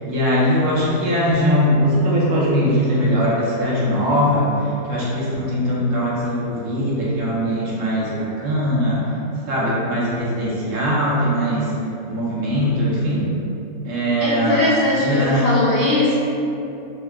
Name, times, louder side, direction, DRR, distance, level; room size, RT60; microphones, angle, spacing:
voice 1, 0.0-9.1 9.5-11.7 12.1-13.3 13.8-14.7 15.0-15.5, equal, 60° right, -7 dB, 1.1 m, -20 dB
voice 2, 14.2-16.1, left 2 dB, 85° left, -7 dB, 0.5 m, -20 dB
4.5 x 2.7 x 2.3 m, 2.7 s
omnidirectional pair, 1.6 m